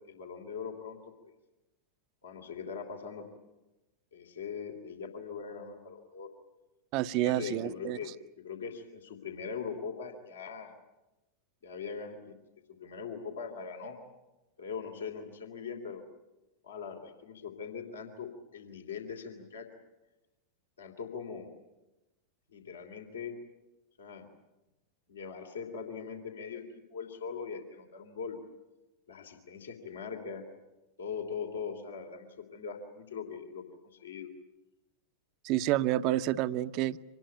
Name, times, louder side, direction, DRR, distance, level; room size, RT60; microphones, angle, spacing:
voice 1, 0.1-1.0 2.2-3.3 4.1-6.3 7.2-10.7 11.6-12.4 12.7-14.0 14.6-16.0 16.6-19.7 20.8-21.5 22.5-23.3 24.0-24.3 25.1-26.6 26.9-28.4 29.1-30.4 31.0-34.3, left 6 dB, 70° left, 3 dB, 3.0 m, -41 dB
voice 2, 6.9-8.0 35.4-37.0, right 14 dB, 40° right, 13 dB, 0.8 m, -29 dB
25.5 x 20.0 x 9.2 m, 1.0 s
figure-of-eight pair, 90°, 0 cm